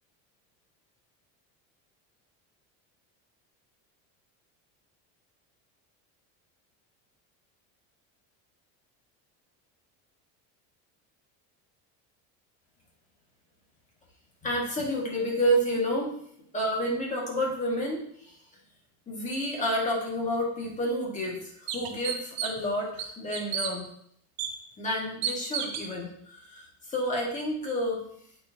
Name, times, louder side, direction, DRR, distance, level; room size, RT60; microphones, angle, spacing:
voice 1, 14.4-16.1 16.5-18.4 19.1-23.9 24.8-28.0, equal, 20° left, -3 dB, 1.8 m, -30 dB
sound 1, 20.6-20.7 21.2-21.3 21.7-22.7 23.0-23.7 24.4-24.5 25.2-25.9, right 8 dB, 60° right, 1.0 m, -31 dB
8.4 x 4.5 x 2.8 m, 0.67 s
cardioid pair, 150°, 39 cm